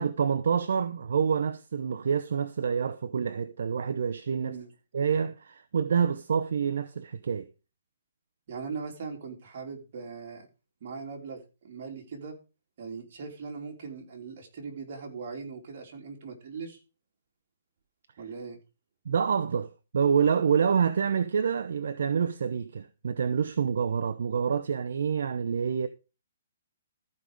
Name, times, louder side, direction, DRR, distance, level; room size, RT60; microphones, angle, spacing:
voice 1, 0.0-4.6 4.9-7.5 19.1-25.9, right 6 dB, 70° right, 0.7 m, -27 dB
voice 2, 4.4-4.7 8.5-10.5 10.8-12.3 12.8-16.8 18.2-18.6, right 5 dB, 50° right, 3.3 m, -40 dB
14.0 x 5.4 x 4.9 m
hypercardioid pair, 155°, 0 cm